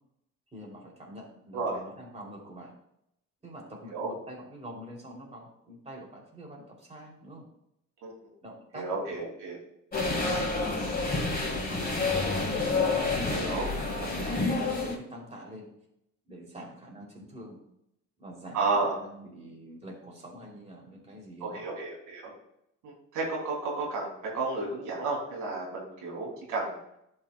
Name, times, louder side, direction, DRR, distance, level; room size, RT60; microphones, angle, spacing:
voice 1, 0.5-2.7 3.4-7.4 8.4-9.2 9.9-10.8 11.4-12.1 12.9-15.7 16.3-17.6 18.2-21.7, right 1 dB, 20° right, -2 dB, 2.9 m, -45 dB
voice 2, 8.7-9.6 13.3-13.7 18.5-19.0 21.4-22.3 22.8-26.7, right 3 dB, 90° right, -3 dB, 2.8 m, -32 dB
sound 1, 9.9-14.9, left 3 dB, 30° left, 2.9 m, -28 dB
12.0 x 5.6 x 2.2 m, 0.78 s
cardioid pair, 90°, 30 cm